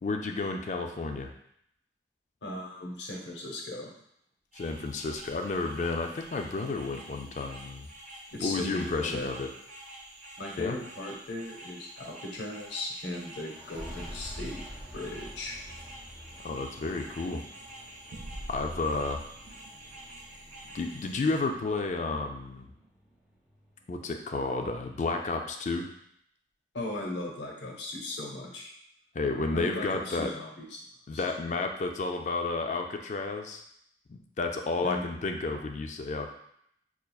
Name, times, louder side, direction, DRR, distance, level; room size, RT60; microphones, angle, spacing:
voice 1, 0.0-1.3 4.5-7.9 8.4-9.5 10.6-10.8 16.4-17.4 18.5-19.2 20.7-22.7 23.9-25.9 29.1-30.3 31.1-33.6 34.1-36.3, left 3 dB, 40° left, 4 dB, 0.4 m, -31 dB
voice 2, 2.4-3.9 8.3-9.3 10.4-14.6 14.9-15.6 26.7-28.7 29.5-30.7 31.1-31.2 34.8-35.1, left 2 dB, 80° left, 0 dB, 0.8 m, -37 dB
sound 1, 4.5-21.4, right 1 dB, 45° right, 0.8 m, -48 dB
sound 2, 13.4-24.7, equal, 5° right, 0.7 m, -49 dB
sound 3, 18.1-22.9, right 1 dB, 70° right, 0.4 m, -47 dB
5.5 x 2.4 x 2.3 m, 0.72 s
head